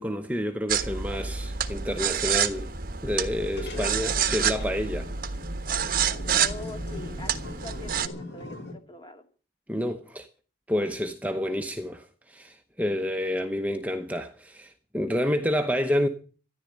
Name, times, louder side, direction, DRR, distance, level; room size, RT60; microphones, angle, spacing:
voice 1, 0.0-2.7 3.0-5.1 9.7-10.3 10.7-16.1, equal, 10° right, 0.9 m, -29 dB
sound 1, 0.7-8.1, right 7 dB, 50° right, 1.2 m, -28 dB
sound 2, 3.4-8.7, left 2 dB, 65° left, 3.7 m, -41 dB
voice 2, 6.4-9.2, left 3 dB, 25° left, 2.1 m, -43 dB
13.5 x 11.0 x 7.8 m
head